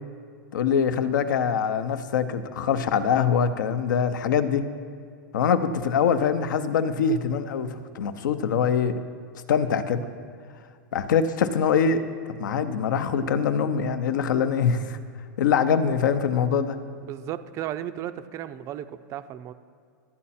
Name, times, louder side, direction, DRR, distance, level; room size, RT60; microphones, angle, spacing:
voice 1, 0.5-4.7 5.3-9.0 9.5-10.0 10.9-12.0 12.4-15.0 15.4-16.8, left 7 dB, 75° left, 11 dB, 0.7 m, -23 dB
voice 2, 17.0-19.5, right 11 dB, 30° right, 12 dB, 0.4 m, -35 dB
12.5 x 8.6 x 4.2 m, 2.1 s
supercardioid pair, 145°, 10 cm